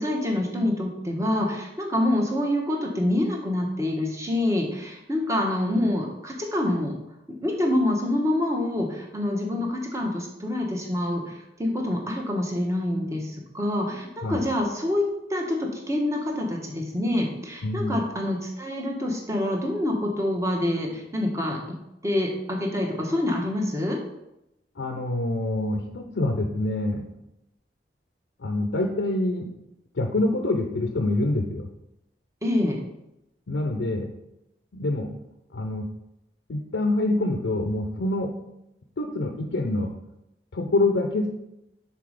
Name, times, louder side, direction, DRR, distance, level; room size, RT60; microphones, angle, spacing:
voice 1, 0.0-7.0 7.3-15.0 15.3-21.8 22.0-24.0 32.4-32.8, left 1 dB, 15° right, 0 dB, 1.1 m, -26 dB
voice 2, 17.6-18.0 24.8-27.1 28.4-29.5 29.9-31.7 33.5-34.1 34.7-35.1 35.5-35.9 36.5-38.3 39.0-39.9 40.5-41.3, left 2 dB, 90° left, 4 dB, 0.6 m, -26 dB
5.8 x 4.1 x 4.9 m, 0.87 s
head